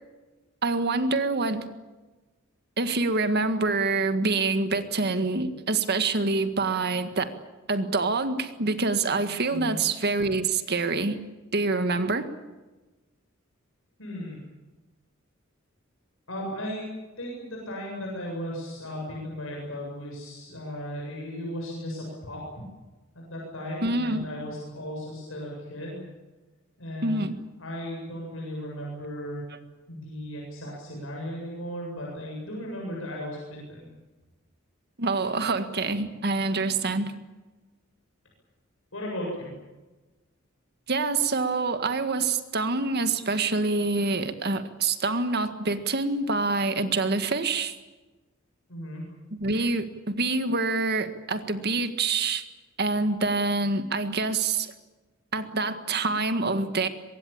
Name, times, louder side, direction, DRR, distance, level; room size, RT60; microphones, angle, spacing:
voice 1, 0.6-1.7 2.8-7.3 7.7-11.2 11.5-12.3 23.8-24.3 27.0-27.4 35.0-37.1 40.9-47.7 49.3-52.4 52.8-54.7 55.3-56.9, right 3 dB, 55° right, 9 dB, 1.8 m, -26 dB
voice 2, 14.0-14.4 16.3-16.9 17.2-22.5 23.1-26.0 26.8-27.3 27.6-29.4 29.9-33.9 38.9-39.5 48.7-49.0, equal, 75° left, -2 dB, 7.9 m, -36 dB
24.0 x 22.5 x 8.7 m, 1.2 s
head